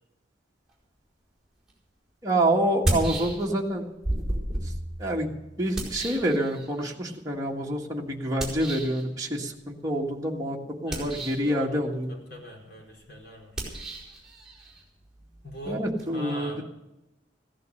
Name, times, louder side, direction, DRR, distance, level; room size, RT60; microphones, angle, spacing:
sound 1, 1.7-1.8 2.7-3.7 4.0-6.9 8.4-9.0 10.8-11.5 13.5-16.1, right 1 dB, 5° right, 4.6 m, -33 dB
voice 1, 2.2-3.9 5.0-5.3 5.6-12.1 15.7-16.6, right 1 dB, 20° right, -2 dB, 1.6 m, -27 dB
voice 2, 11.4-11.8 12.1-13.6 14.6-14.8 15.4-16.6, left 1 dB, 60° left, -2 dB, 4.9 m, -42 dB
15.5 x 11.0 x 6.5 m, 0.95 s
head